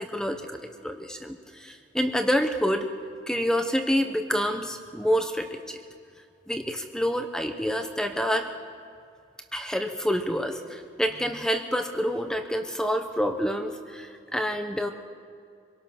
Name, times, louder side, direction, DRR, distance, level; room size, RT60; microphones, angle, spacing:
voice 1, 0.0-2.9 3.3-5.8 6.5-8.5 9.5-14.9, equal, 5° left, 6 dB, 1.0 m, -27 dB
25.0 x 18.5 x 6.0 m, 2.4 s
head